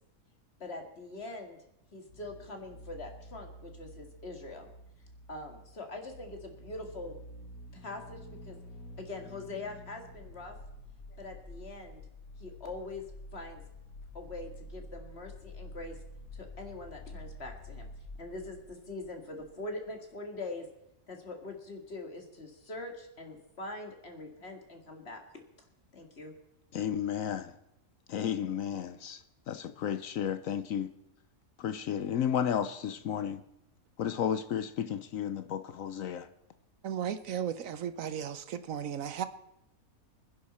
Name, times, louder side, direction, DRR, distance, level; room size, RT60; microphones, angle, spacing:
voice 1, 0.6-1.6 1.9-4.7 5.3-7.2 7.7-8.6 9.0-10.6 11.2-12.0 12.4-13.0 13.3-13.6 14.1-16.0 16.3-17.9 18.2-20.7 21.1-25.2 25.9-26.3, left 2 dB, 45° left, 2.3 m, -43 dB
sound 1, 2.1-19.6 19.9-20.0, left 1 dB, 85° left, 1.8 m, -49 dB
voice 2, 26.7-27.6 28.1-30.9 31.6-33.4 34.0-36.3, left 9 dB, 70° left, 1.1 m, -33 dB
voice 3, 36.8-39.3, right 9 dB, 70° right, 1.1 m, -35 dB
24.5 x 10.5 x 4.3 m
omnidirectional pair, 1.5 m